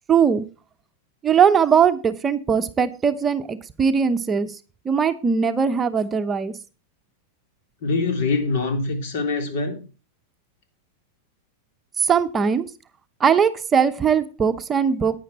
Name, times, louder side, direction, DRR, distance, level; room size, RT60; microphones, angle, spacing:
voice 1, 0.1-0.5 1.2-4.5 4.8-6.5 12.0-12.7 13.2-15.2, right 7 dB, 20° right, 0.8 m, -20 dB
voice 2, 7.8-9.8, left 3 dB, 70° left, 3.5 m, -24 dB
10.5 x 9.5 x 4.1 m
hypercardioid pair, 125°, 0 cm